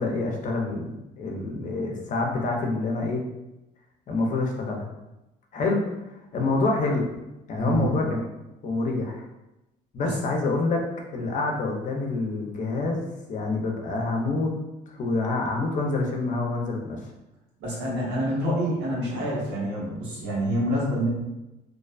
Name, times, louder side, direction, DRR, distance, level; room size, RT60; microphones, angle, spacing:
voice 1, 0.0-3.2 4.1-4.9 5.5-5.8 6.3-7.0 7.5-8.2 8.6-9.2 9.9-10.8 11.1-14.5 14.9-17.0, left 3 dB, 50° left, 1 dB, 0.5 m, -27 dB
voice 2, 7.6-8.0 10.0-10.1 17.6-21.1, equal, 85° right, -5 dB, 1.0 m, -27 dB
2.4 x 2.2 x 2.4 m, 0.96 s
cardioid pair, 110°, 17 cm